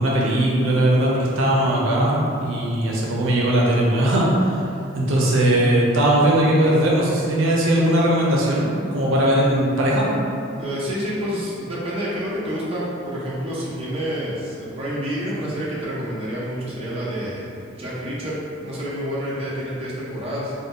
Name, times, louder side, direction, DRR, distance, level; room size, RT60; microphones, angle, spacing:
voice 1, 0.0-4.3 4.9-10.1, right 1 dB, 80° right, -4 dB, 0.5 m, -19 dB
voice 2, 10.6-17.5 17.8-20.5, equal, 30° right, -8 dB, 0.5 m, -28 dB
2.5 x 2.1 x 3.6 m, 2.6 s
head